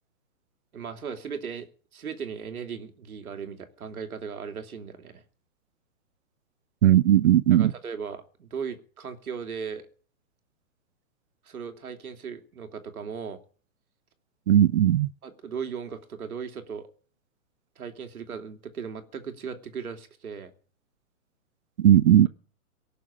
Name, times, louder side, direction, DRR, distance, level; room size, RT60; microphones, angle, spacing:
voice 1, 0.7-5.2 7.5-9.9 11.4-13.4 15.2-16.9 17.8-20.5, right 6 dB, 80° right, 2.8 m, -37 dB
voice 2, 6.8-7.7 14.5-15.1 21.8-22.3, right 11 dB, 50° right, 0.7 m, -18 dB
18.0 x 7.0 x 8.7 m
hypercardioid pair, 155°, 43 cm